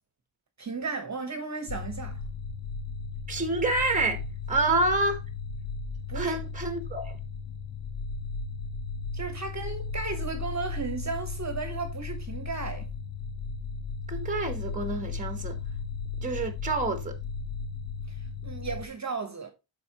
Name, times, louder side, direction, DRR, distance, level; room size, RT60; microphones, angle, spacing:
voice 1, 0.6-2.2 6.1-6.4 9.1-12.9 18.1-19.5, right 4 dB, 35° right, 1.2 m, -35 dB
sound 1, 1.7-18.9, left 4 dB, 65° left, 0.8 m, -35 dB
voice 2, 3.3-4.2 4.5-5.2 6.1-7.2 14.1-15.6 16.2-17.2, right 2 dB, 15° right, 1.2 m, -28 dB
11.0 x 4.2 x 2.9 m
wide cardioid pair, 165°, 50 cm